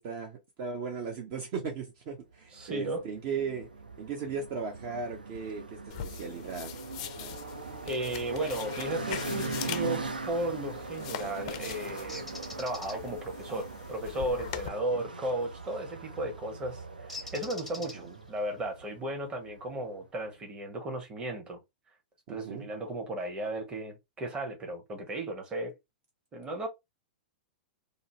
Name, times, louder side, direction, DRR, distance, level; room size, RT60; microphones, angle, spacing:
voice 1, 0.0-3.7 4.0-7.4 14.9-15.0 17.9-18.2 22.3-22.7, right 5 dB, 45° right, 0.6 m, -37 dB
voice 2, 2.5-3.0 7.8-21.6 22.3-25.7 26.3-26.7, right 1 dB, 20° right, 0.9 m, -35 dB
sound 1, 2.6-20.0, right 3 dB, 85° right, 0.4 m, -41 dB
sound 2, 5.9-14.7, left 10 dB, 45° left, 0.4 m, -42 dB
Bird, 12.1-13.0 15.6-15.8 17.1-18.3, left 2 dB, ahead, 0.6 m, -43 dB
2.6 x 2.0 x 2.8 m
figure-of-eight pair, 100°, 5 cm